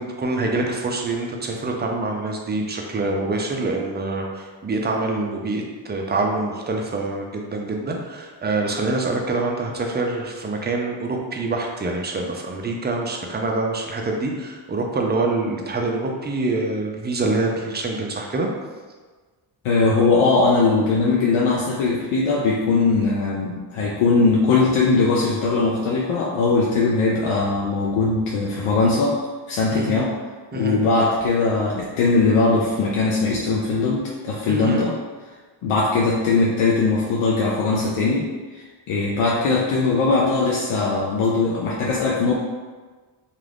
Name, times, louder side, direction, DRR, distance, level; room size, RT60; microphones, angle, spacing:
voice 1, 0.0-18.5 29.7-30.0 30.5-30.8 34.5-34.9, right 2 dB, 20° right, 1 dB, 0.4 m, -25 dB
voice 2, 19.6-29.2 29.5-30.2 30.5-34.9 35.6-42.3, left 3 dB, 85° left, -4 dB, 0.6 m, -20 dB
2.4 x 2.3 x 3.3 m, 1.4 s
cardioid pair, 75°, 49 cm